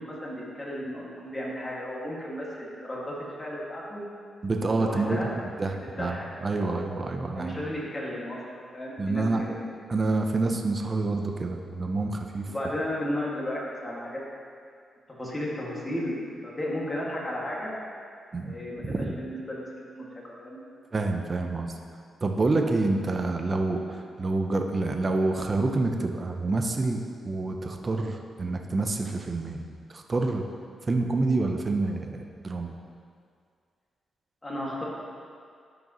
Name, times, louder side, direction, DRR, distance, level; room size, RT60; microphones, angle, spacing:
voice 1, 0.0-4.0 4.7-5.4 5.8-6.3 6.6-6.9 7.3-9.6 12.5-14.2 15.2-16.2 16.4-17.8 18.4-20.6 34.4-34.8, left 1 dB, 25° left, -5 dB, 2.1 m, -34 dB
voice 2, 4.4-7.6 9.0-9.4 9.9-12.5 18.3-18.5 18.8-19.1 20.9-21.7 22.2-23.8 24.2-30.4 30.9-32.7, right 3 dB, 35° right, 3 dB, 0.8 m, -27 dB
12.0 x 5.2 x 3.1 m, 2.2 s
cardioid pair, 75°, 0 cm